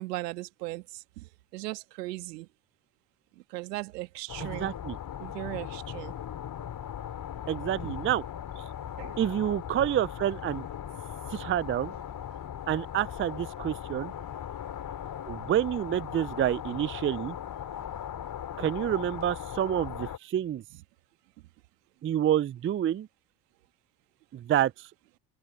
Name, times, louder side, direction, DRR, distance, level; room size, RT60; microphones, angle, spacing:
voice 1, 0.0-2.5 3.5-4.7 5.2-6.1 9.0-9.2 17.8-17.9, right 20 dB, 75° right, 1.7 m, -38 dB
sound 1, 4.3-20.2, left 9 dB, 45° left, 3.6 m, -39 dB
voice 2, 4.4-5.0 7.5-8.2 9.2-10.7 11.3-11.9 12.7-14.1 15.3-17.4 18.6-20.6 22.0-23.1 24.3-24.9, right 11 dB, 25° right, 0.6 m, -28 dB
hypercardioid pair, 60°, 49 cm